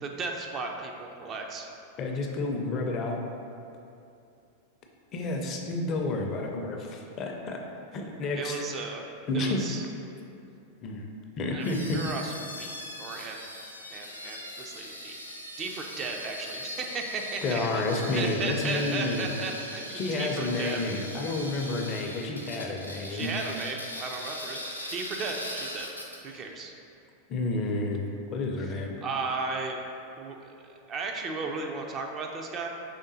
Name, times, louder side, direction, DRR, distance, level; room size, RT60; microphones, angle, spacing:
voice 1, 0.0-1.7 8.4-9.0 9.3-9.8 11.5-13.5 13.9-15.2 15.6-20.8 23.1-24.6 24.9-25.9 26.2-26.7 29.0-29.8 30.2-32.7, right 4 dB, 30° right, 2 dB, 0.4 m, -35 dB
voice 2, 2.0-3.2 5.1-7.6 7.9-8.7 9.3-9.7 10.8-11.0 11.4-12.0 17.4-19.3 19.9-23.3 27.3-28.0 28.3-28.9, left 2 dB, 35° left, 2 dB, 0.5 m, -30 dB
sound 1, 11.6-26.4, left 1 dB, 85° left, 0.4 m, -40 dB
4.9 x 3.5 x 2.7 m, 2.6 s
figure-of-eight pair, 90°, 0 cm